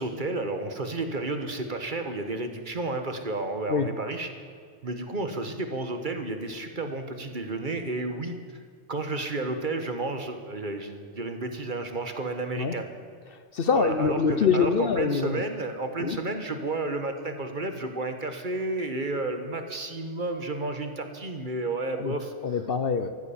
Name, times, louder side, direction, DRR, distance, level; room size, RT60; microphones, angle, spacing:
voice 1, 0.0-4.3 4.8-8.4 8.9-12.9 13.7-22.3, right 2 dB, 45° right, 7 dB, 1.4 m, -31 dB
voice 2, 13.3-15.4 16.0-16.2 22.0-22.1 22.4-23.3, left 6 dB, 55° left, 11 dB, 0.9 m, -25 dB
15.0 x 13.0 x 7.1 m, 2.1 s
omnidirectional pair, 1.2 m